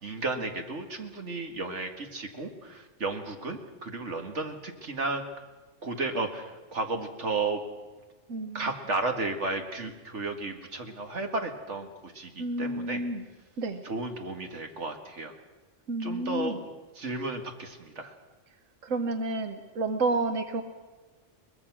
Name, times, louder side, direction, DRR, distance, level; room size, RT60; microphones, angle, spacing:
voice 1, 0.0-5.2 5.8-7.6 8.5-13.0 13.8-15.3 16.0-18.1, right 3 dB, 65° right, 4 dB, 2.3 m, -33 dB
voice 2, 8.3-8.7 12.4-13.2 13.6-13.8 15.9-16.6 18.8-20.6, right 2 dB, 85° right, 7 dB, 1.5 m, -30 dB
23.0 x 20.0 x 6.1 m, 1.3 s
omnidirectional pair, 1.3 m